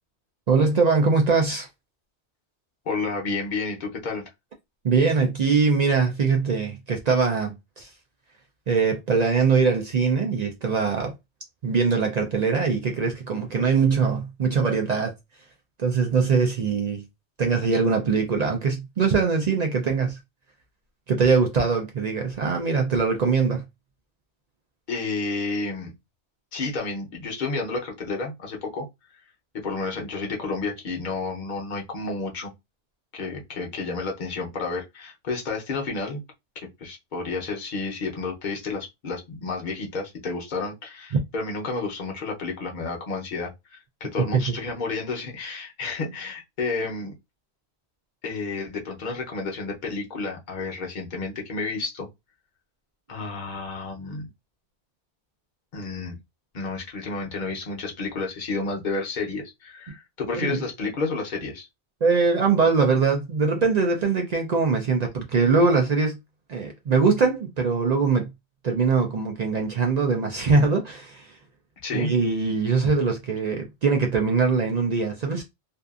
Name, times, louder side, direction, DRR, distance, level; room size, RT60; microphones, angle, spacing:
voice 1, 0.5-1.7 4.8-7.9 8.7-11.1 11.6-15.1 15.8-17.0 17.4-20.2 21.1-23.6 44.3-44.5 60.3-60.6 62.0-66.2 66.5-68.3 68.6-71.4 71.9-75.4, right 4 dB, 55° right, 0.4 m, -22 dB
voice 2, 2.9-4.2 24.9-25.9 26.5-28.9 29.5-32.5 33.1-36.2 36.6-47.1 48.2-52.1 53.1-54.3 55.7-56.2 56.5-61.7 71.8-72.1, left 3 dB, 50° left, 0.8 m, -31 dB
2.6 x 2.4 x 2.4 m
omnidirectional pair, 1.1 m